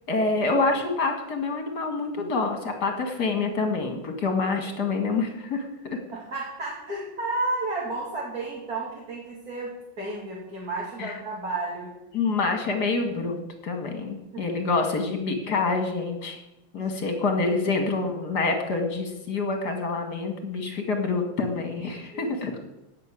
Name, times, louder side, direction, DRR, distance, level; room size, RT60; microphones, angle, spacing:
voice 1, 0.1-6.0 11.0-11.2 12.1-16.4 16.7-22.6, left 3 dB, 50° left, 5 dB, 2.8 m, -27 dB
voice 2, 6.1-11.9 14.3-14.4 16.8-17.4 21.9-22.3, right 2 dB, 45° right, -4 dB, 3.3 m, -32 dB
17.0 x 6.7 x 8.7 m, 0.92 s
omnidirectional pair, 2.2 m